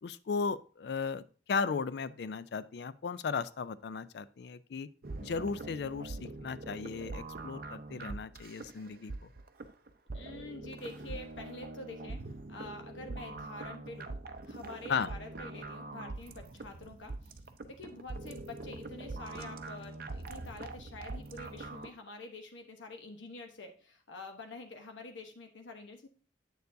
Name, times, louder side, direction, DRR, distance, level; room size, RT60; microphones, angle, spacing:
voice 1, 0.0-4.9 5.2-9.3 14.9-15.1, left 5 dB, 65° left, 16 dB, 0.4 m, -36 dB
sound 1, 5.0-21.9, right 2 dB, 50° right, 0.6 m, -43 dB
voice 2, 10.1-14.2 14.4-26.1, left 2 dB, 90° left, 4 dB, 0.9 m, -47 dB
8.1 x 6.7 x 2.6 m, 0.39 s
head